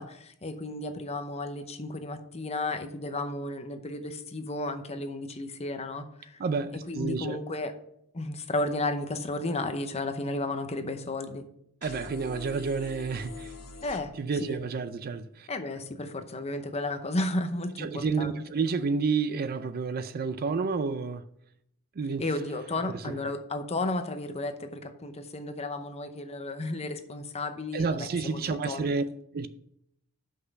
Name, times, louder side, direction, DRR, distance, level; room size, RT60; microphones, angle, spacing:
voice 1, 0.0-6.4 6.7-7.7 8.1-11.4 13.8-14.1 14.4-14.6 15.5-18.4 22.2-28.8, left 2 dB, 30° left, 0.7 m, -33 dB
voice 2, 6.4-7.4 11.8-13.5 14.2-15.5 17.8-21.2 22.0-22.2 22.9-23.2 27.7-29.0 29.3-29.5, right 4 dB, 45° right, 0.4 m, -30 dB
sound 1, 11.8-14.0, left 3 dB, 85° left, 1.4 m, -43 dB
6.0 x 5.6 x 6.5 m
head